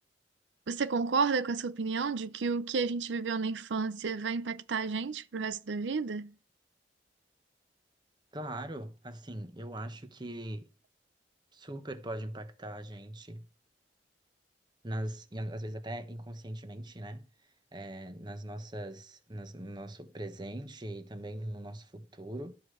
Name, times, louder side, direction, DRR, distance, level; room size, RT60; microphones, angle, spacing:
voice 1, 0.7-6.3, right 4 dB, 85° right, 0.5 m, -31 dB
voice 2, 8.3-10.7 11.5-13.4 14.8-17.2 17.7-22.5, right 1 dB, 25° right, 1.1 m, -40 dB
13.0 x 5.0 x 7.9 m
head